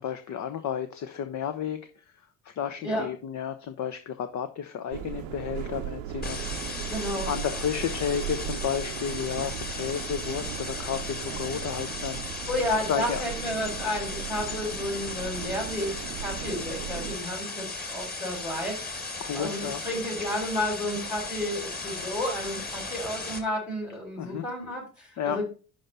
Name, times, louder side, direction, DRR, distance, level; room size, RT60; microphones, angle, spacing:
voice 1, 0.0-2.0 2.4-6.4 7.3-12.2 12.9-13.2 19.2-19.8 24.2-24.4 25.2-25.4, left 8 dB, 40° left, 9 dB, 0.9 m, -32 dB
sound 1, 4.9-17.2, right 12 dB, 65° right, 0.9 m, -37 dB
sound 2, 6.2-23.4, left 3 dB, 20° left, 1.8 m, -36 dB
voice 2, 6.8-7.3 12.5-19.1 19.3-25.4, left 1 dB, 80° left, -4 dB, 4.4 m, -32 dB
11.5 x 4.3 x 4.0 m, 0.36 s
figure-of-eight pair, 55°, 44 cm